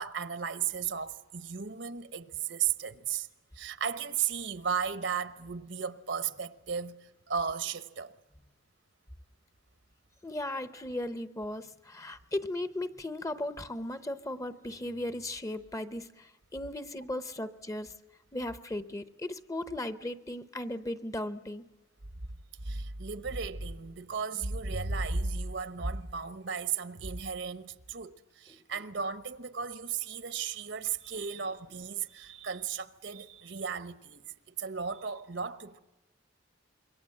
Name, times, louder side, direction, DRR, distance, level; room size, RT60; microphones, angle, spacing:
voice 1, 0.0-3.3 3.5-8.1 22.6-34.2 34.6-35.8, right 6 dB, 65° right, 1.2 m, -35 dB
voice 2, 10.2-17.9 18.3-21.7 28.5-28.6 31.1-31.2, left 1 dB, 15° left, 0.9 m, -37 dB
26.5 x 23.0 x 7.8 m
head